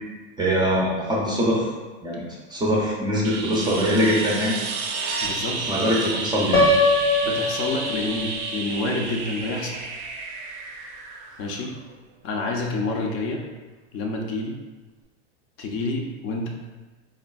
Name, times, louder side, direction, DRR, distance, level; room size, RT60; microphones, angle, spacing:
voice 1, 0.4-1.7 2.0-2.2 2.5-4.6 5.5-6.6, equal, 15° right, -4 dB, 0.4 m, -22 dB
sound 1, 3.2-11.9 14.3-14.4, right 4 dB, 85° right, 0.5 m, -31 dB
voice 2, 5.2-5.6 6.2-6.3 7.2-9.9 11.4-11.7 12.2-13.4 13.9-14.6 15.6-16.5, left 2 dB, 45° left, 1 dB, 0.5 m, -28 dB
Piano, 6.5-8.5, left 2 dB, 85° left, 0.9 m, -21 dB
3.4 x 2.1 x 2.3 m, 1.2 s
supercardioid pair, 115°, 33 cm